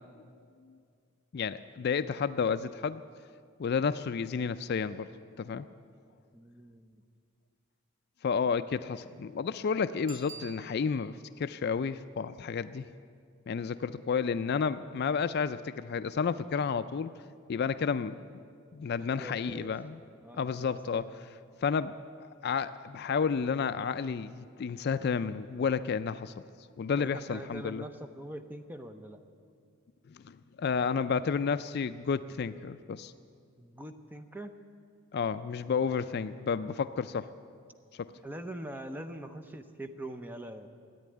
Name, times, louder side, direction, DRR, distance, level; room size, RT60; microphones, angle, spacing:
voice 1, 1.3-3.0 3.6-5.1 5.4-5.7 8.2-12.9 13.5-17.1 17.5-18.2 18.7-20.0 20.3-21.1 21.6-22.0 22.4-26.3 26.8-27.8 30.1-33.1 35.1-37.3 37.9-38.1, left 6 dB, 45° left, 12 dB, 0.3 m, -31 dB
voice 2, 6.3-7.0 8.6-8.7 19.0-19.7 20.2-21.1 27.0-29.2 33.6-34.5 38.2-40.7, right 1 dB, 10° right, 7 dB, 0.6 m, -43 dB
Bicycle bell, 10.0-11.2 16.7-16.8, right 5 dB, 55° right, 1.2 m, -48 dB
14.0 x 9.2 x 9.7 m, 2.2 s
head